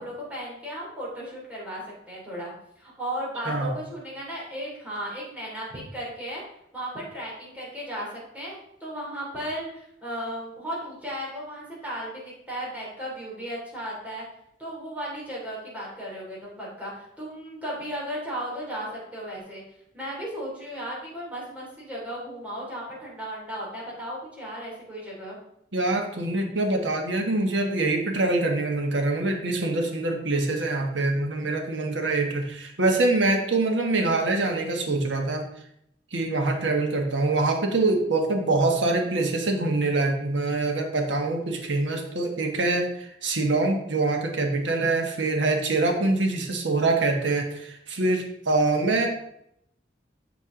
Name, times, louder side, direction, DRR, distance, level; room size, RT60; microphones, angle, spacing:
voice 1, 0.0-2.5 2.8-6.4 6.7-8.1 8.3-14.2 14.6-19.6 19.9-25.4, equal, 10° right, -6 dB, 2.9 m, -35 dB
voice 2, 25.7-35.4 36.1-49.1, right 2 dB, 80° right, 3 dB, 1.3 m, -24 dB
7.6 x 6.2 x 3.7 m, 0.75 s
head